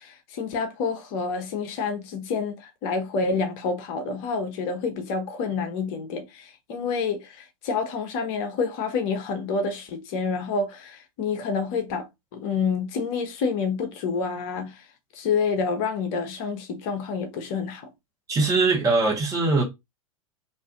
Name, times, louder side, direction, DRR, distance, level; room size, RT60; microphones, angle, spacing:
voice 1, 0.0-12.1 12.3-14.8 15.1-17.9, left 5 dB, 45° left, 0.7 m, -28 dB
voice 2, 18.3-19.6, right 3 dB, 20° right, 1.0 m, -21 dB
2.5 x 2.4 x 2.4 m
hypercardioid pair, 100°, 18 cm